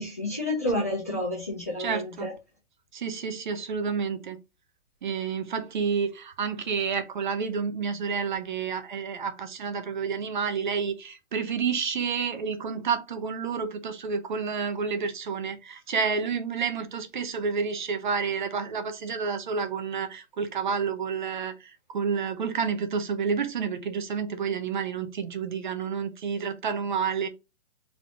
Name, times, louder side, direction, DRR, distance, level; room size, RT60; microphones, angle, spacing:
voice 1, 0.0-2.3, left 1 dB, 15° left, 0.4 m, -30 dB
voice 2, 1.8-2.3 2.9-4.4 5.0-27.3, right 6 dB, 45° right, 0.7 m, -29 dB
3.5 x 3.5 x 2.5 m
hypercardioid pair, 165°, 35 cm